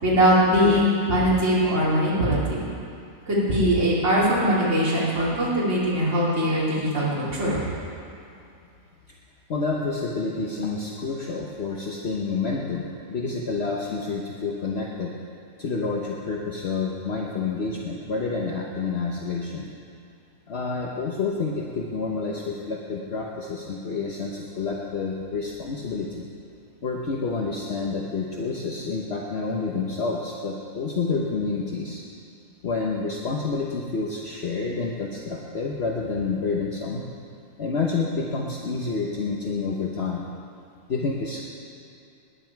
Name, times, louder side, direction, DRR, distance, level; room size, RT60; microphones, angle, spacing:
voice 1, 0.0-2.7 3.3-7.6, equal, 50° right, -8 dB, 3.1 m, -21 dB
voice 2, 9.5-15.1 15.6-19.7 20.5-26.3 26.8-32.0 32.6-37.0 37.6-40.2 40.9-41.4, left 4 dB, 50° left, -2 dB, 1.2 m, -28 dB
19.5 x 10.0 x 4.6 m, 2.6 s
omnidirectional pair, 1.6 m